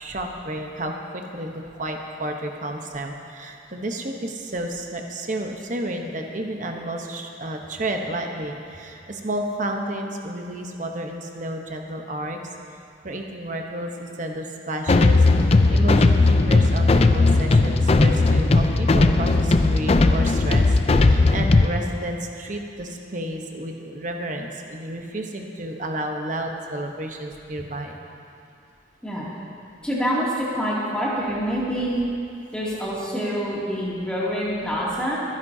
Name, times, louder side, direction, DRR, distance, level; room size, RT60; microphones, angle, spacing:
voice 1, 0.0-12.4 13.0-28.0, right 1 dB, 40° right, 3 dB, 0.9 m, -31 dB
sound 1, 14.9-21.7, left 3 dB, 30° left, 0.4 m, -17 dB
voice 2, 29.8-32.0 32.5-35.2, equal, 5° left, -8 dB, 2.5 m, -26 dB
23.5 x 10.5 x 2.8 m, 2.6 s
head